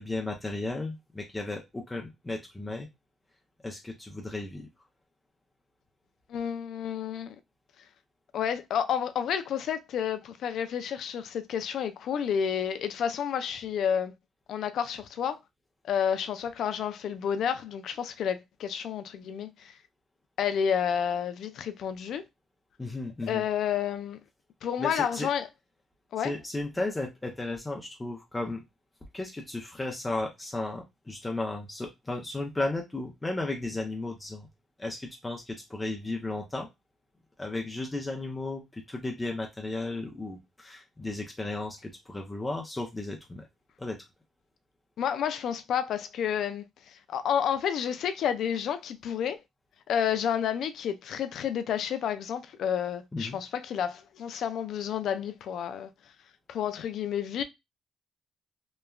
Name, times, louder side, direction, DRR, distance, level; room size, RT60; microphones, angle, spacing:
voice 1, 0.0-2.9 3.6-4.7 22.8-23.4 24.8-25.3 26.2-28.6 29.1-34.5 34.8-36.7 37.4-43.5 43.8-44.0 53.1-53.4, left 2 dB, 15° left, 0.5 m, -34 dB
voice 2, 6.3-7.3 8.3-14.1 14.5-15.4 15.8-19.7 20.4-22.2 23.3-24.2 24.6-25.5 26.1-26.3 45.0-46.6 47.1-49.4 49.9-55.9 56.5-57.4, left 8 dB, 70° left, 0.4 m, -30 dB
3.0 x 2.2 x 2.3 m
cardioid pair, 90°, 0 cm